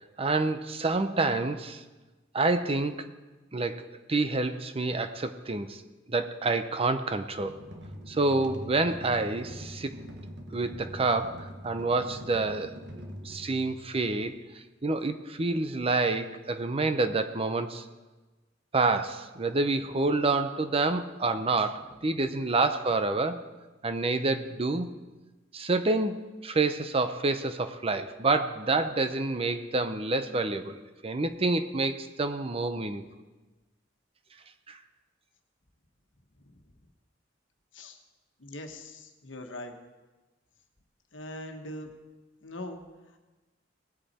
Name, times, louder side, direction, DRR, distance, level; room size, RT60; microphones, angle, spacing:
voice 1, 0.2-1.8 2.3-3.1 3.5-5.8 6.1-7.6 8.1-10.0 10.5-14.4 14.8-17.8 18.7-23.4 23.8-25.0 25.5-30.8 31.0-33.0 34.7-34.8, right 3 dB, 30° right, 10 dB, 0.7 m, -28 dB
sound 1, 7.4-14.2, equal, 65° right, 1.3 m, -44 dB
voice 2, 38.4-39.7 41.1-41.9 42.4-42.8, left 1 dB, 85° left, 4 dB, 1.3 m, -41 dB
19.0 x 8.2 x 4.3 m, 1.2 s
head